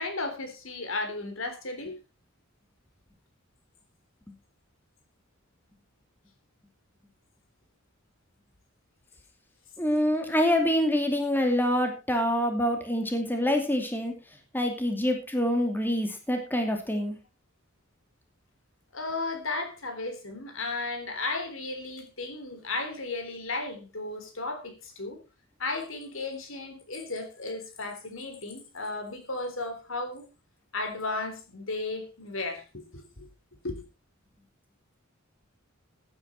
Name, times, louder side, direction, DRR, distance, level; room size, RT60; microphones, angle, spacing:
voice 1, 0.0-2.0 12.5-12.6 18.9-25.2 25.6-30.3 30.7-33.3 33.6-33.8, left 3 dB, 70° left, 7 dB, 3.6 m, -34 dB
voice 2, 9.8-14.1 14.5-17.1, equal, 10° left, 4 dB, 2.6 m, -26 dB
15.0 x 9.8 x 4.4 m, 0.30 s
head